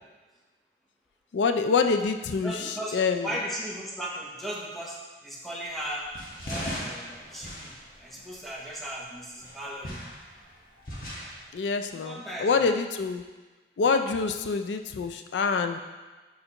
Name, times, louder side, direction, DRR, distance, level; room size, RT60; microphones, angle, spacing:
voice 1, 1.3-3.3 11.5-13.2 13.8-15.8, left 4 dB, 85° left, 7 dB, 0.4 m, -26 dB
voice 2, 2.4-6.1 6.4-10.0 11.9-12.7, equal, ahead, -4 dB, 0.9 m, -37 dB
sound 1, 5.8-8.8 9.4-11.5, equal, 50° left, 1.3 m, -39 dB
6.5 x 5.5 x 2.9 m, 1.3 s
head